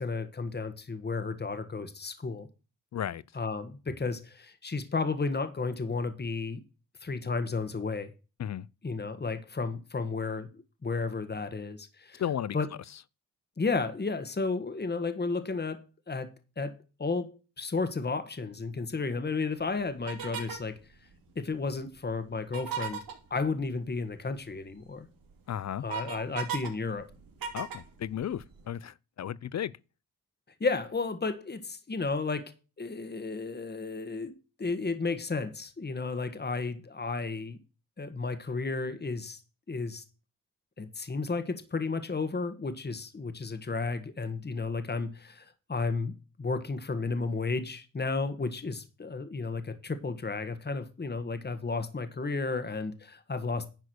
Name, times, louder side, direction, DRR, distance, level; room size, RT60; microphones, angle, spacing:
voice 1, 0.0-2.5 3.3-6.6 7.0-8.1 8.8-12.2 12.5-12.7 13.6-20.8 21.3-23.0 23.3-25.1 25.8-27.1 30.6-37.6 38.0-39.4 39.7-40.0 40.8-46.1 46.4-53.7, left 4 dB, 30° left, 1.5 m, -33 dB
voice 2, 2.9-3.2 8.4-8.7 12.2-12.6 25.5-25.8 27.5-29.7, left 10 dB, 55° left, 0.5 m, -34 dB
sound 1, 20.1-20.7 22.4-23.2 24.8-24.9 25.3-26.7 27.0-28.6, right 7 dB, 85° right, 2.9 m, -36 dB
10.5 x 4.8 x 6.4 m
cardioid pair, 70°, 34 cm